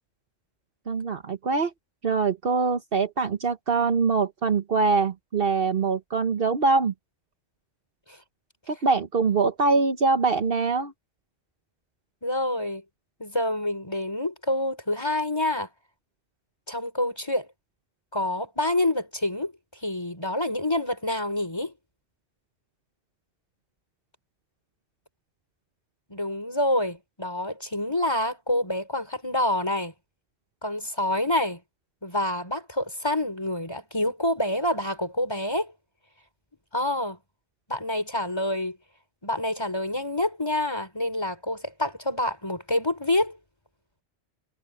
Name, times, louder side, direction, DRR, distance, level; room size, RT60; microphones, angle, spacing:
voice 1, 0.9-1.7 2.0-6.9 8.7-10.9, right 4 dB, 55° right, 1.2 m, -23 dB
voice 2, 12.2-12.8 13.2-15.7 16.7-17.5 18.1-19.5 19.8-21.7 26.1-29.9 30.6-31.6 32.0-35.7 36.7-37.2 37.7-38.8 39.2-43.4, left 1 dB, 20° left, 5.0 m, -27 dB
omnidirectional pair, 1.2 m